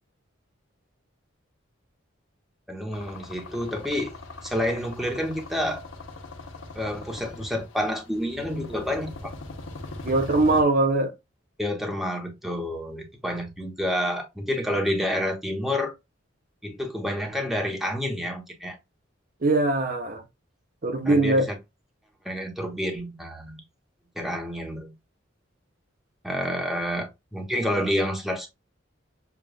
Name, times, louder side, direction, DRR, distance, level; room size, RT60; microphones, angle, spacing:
voice 1, 2.7-4.1 4.4-5.9 6.7-9.3 11.6-15.9 16.6-18.8 21.0-21.4 22.2-23.6 24.2-24.9 26.2-28.5, equal, ahead, 1.0 m, -29 dB
sound 1, 2.9-10.6, left 2 dB, 85° left, 0.9 m, -40 dB
voice 2, 10.0-11.1 19.4-20.2 20.8-21.4, right 2 dB, 45° right, 0.7 m, -21 dB
6.8 x 2.4 x 2.3 m
head